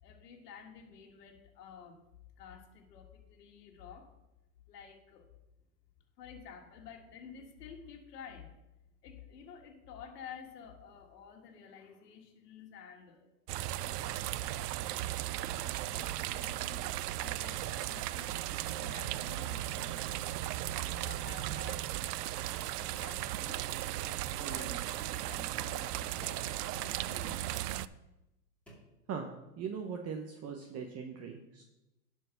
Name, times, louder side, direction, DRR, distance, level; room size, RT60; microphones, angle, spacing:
voice 1, 0.0-2.0 2.4-4.1 4.7-5.3 6.2-8.5 9.0-14.4 15.4-20.3 20.7-21.9 22.8-23.6 24.0-27.5, left 7 dB, 80° left, 2 dB, 1.8 m, -52 dB
sound 1, 13.5-27.9, right 14 dB, 75° right, 0.6 m, -36 dB
sound 2, 23.7-24.1 26.2-26.6 28.0-28.1 28.7-29.0, right 1 dB, ahead, 2.7 m, -54 dB
voice 2, 24.4-24.8 29.1-29.3 29.6-31.6, right 6 dB, 30° right, 4 dB, 0.9 m, -40 dB
11.0 x 4.7 x 5.8 m, 0.95 s
supercardioid pair, 130°, 48 cm